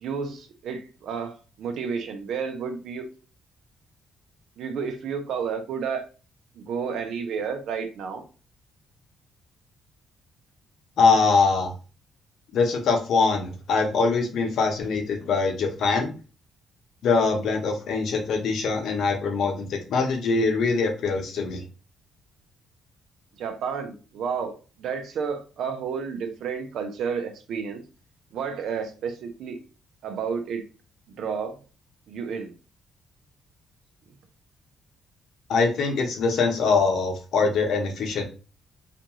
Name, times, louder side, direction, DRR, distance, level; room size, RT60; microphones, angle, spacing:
voice 1, 0.0-3.1 4.6-6.0 6.6-8.2 23.4-27.8 28.3-29.6 30.0-30.6 31.1-31.5 32.1-32.6, right 6 dB, 75° right, 5 dB, 0.6 m, -31 dB
voice 2, 11.0-11.7 12.5-16.1 17.0-21.6 35.5-38.2, left 4 dB, 70° left, 3 dB, 0.7 m, -23 dB
2.5 x 2.3 x 2.9 m, 0.34 s
cardioid pair, 90°, 0 cm